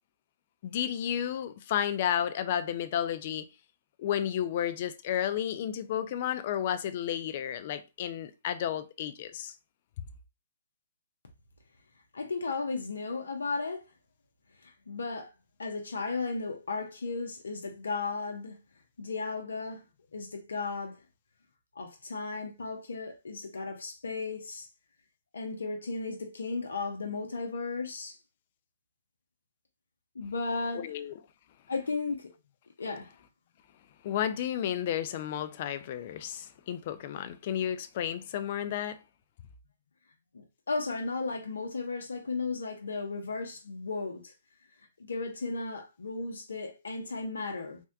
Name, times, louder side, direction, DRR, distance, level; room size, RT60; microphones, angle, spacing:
voice 1, 0.6-3.4 4.0-9.5 30.8-31.1 34.0-39.0, left 10 dB, 45° left, 0.3 m, -32 dB
voice 2, 12.1-13.8 14.6-15.3 15.6-18.6 19.0-19.8 20.1-21.0 21.8-24.7 25.3-28.2 30.1-31.0 31.7-32.3 32.8-33.1 40.3-44.3 45.1-47.8, left 3 dB, 80° left, 0.7 m, -35 dB
3.4 x 2.2 x 2.6 m
hypercardioid pair, 145°, 0 cm